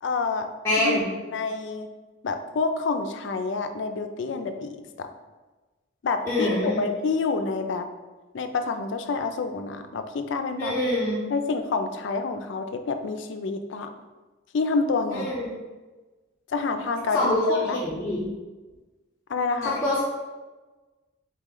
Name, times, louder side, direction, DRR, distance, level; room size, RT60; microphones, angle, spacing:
voice 1, 0.0-0.5 0.8-1.0 1.3-1.9 2.2-5.1 6.0-7.9 8.3-10.7 11.3-13.9 14.5-15.3 16.5-17.8 19.3-19.8, left 4 dB, 65° left, 7 dB, 0.4 m, -28 dB
voice 2, 0.6-1.1 6.2-6.8 10.6-11.2 15.1-15.5 17.1-18.2 19.6-20.0, left 1 dB, 15° left, -9 dB, 0.6 m, -25 dB
4.1 x 3.1 x 3.7 m, 1.2 s
head